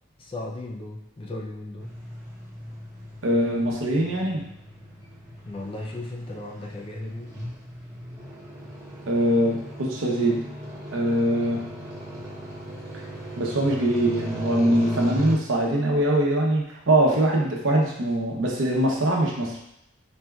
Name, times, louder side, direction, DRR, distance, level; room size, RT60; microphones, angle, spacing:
voice 1, 0.2-2.0 5.3-7.4, left 2 dB, 25° left, 0 dB, 0.5 m, -36 dB
sound 1, 1.8-15.3, equal, 20° right, 0.9 m, -38 dB
voice 2, 3.2-4.4 9.1-10.4 10.9-11.6 13.4-19.6, right 1 dB, 80° right, -1 dB, 0.8 m, -22 dB
4.3 x 3.3 x 2.3 m, 0.79 s
head